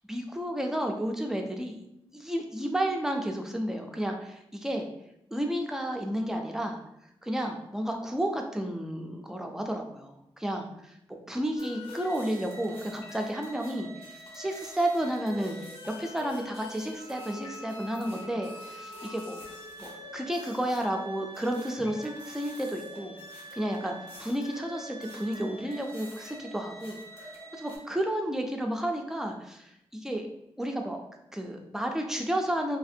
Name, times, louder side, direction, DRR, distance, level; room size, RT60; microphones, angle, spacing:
voice 1, 0.1-1.8 2.1-4.9 5.3-6.8 7.2-10.7 11.3-15.6 16.0-19.4 19.8-23.2 23.5-23.9 24.2-29.7 30.0-30.3 30.6-31.0 31.3-32.8, right 1 dB, 5° right, 3 dB, 0.3 m, -32 dB
sound 1, 11.6-27.8, equal, 80° left, 0.8 m, -44 dB
2.8 x 2.4 x 2.5 m, 0.81 s
wide cardioid pair, 145°, 10 cm